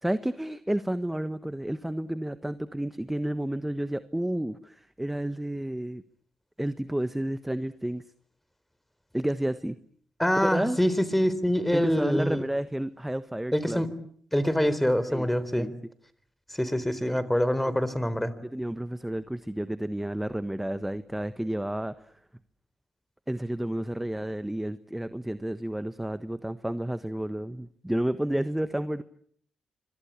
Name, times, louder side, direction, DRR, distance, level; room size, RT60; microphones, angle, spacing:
voice 1, 0.0-6.0 6.6-8.0 9.1-9.8 10.4-10.8 11.7-13.8 15.1-15.3 15.6-15.7 18.4-21.9 23.3-29.0, right 1 dB, 10° right, 13 dB, 1.3 m, -31 dB
voice 2, 10.2-12.4 13.5-13.9 14.3-15.7 16.5-18.3, equal, 5° left, 15 dB, 4.0 m, -25 dB
25.5 x 23.5 x 8.5 m, 0.62 s
hypercardioid pair, 45°, 2 cm